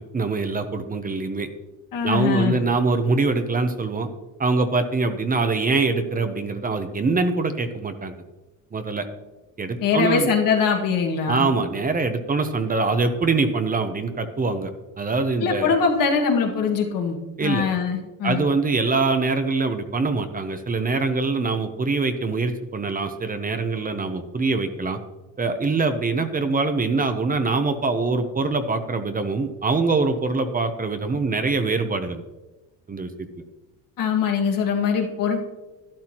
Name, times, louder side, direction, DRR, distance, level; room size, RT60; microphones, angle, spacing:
voice 1, 0.1-1.5 2.0-4.1 4.4-8.1 8.7-9.1 9.6-10.3 11.2-14.7 15.0-15.7 17.4-17.7 18.2-25.0 25.4-32.2 32.9-33.1, right 3 dB, 25° right, 8 dB, 0.8 m, -23 dB
voice 2, 1.9-2.6 9.8-11.5 15.4-18.4 34.0-35.5, left 6 dB, 70° left, 1 dB, 1.9 m, -22 dB
12.0 x 11.5 x 3.0 m, 1.1 s
cardioid pair, 115°, 34 cm